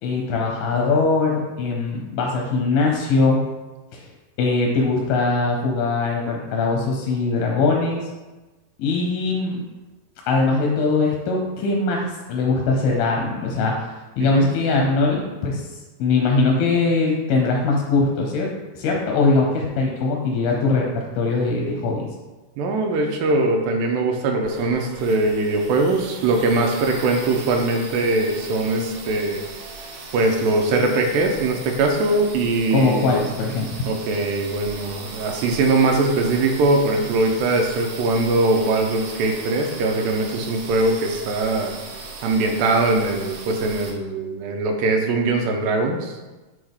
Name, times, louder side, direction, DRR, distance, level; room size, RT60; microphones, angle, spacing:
voice 1, 0.0-3.4 3.9-4.0 4.4-8.0 8.8-9.6 10.3-13.7 14.2-15.7 16.0-18.5 18.7-22.1 32.7-33.7, left 3 dB, 90° left, 0 dB, 2.6 m, -21 dB
voice 2, 22.6-29.4 30.1-33.2 33.9-41.7 42.2-46.2, right 2 dB, 85° right, 2 dB, 2.4 m, -21 dB
sound 1, 24.4-43.9, right 3 dB, 65° right, 2.0 m, -38 dB
9.9 x 3.5 x 3.5 m, 1.1 s
omnidirectional pair, 4.0 m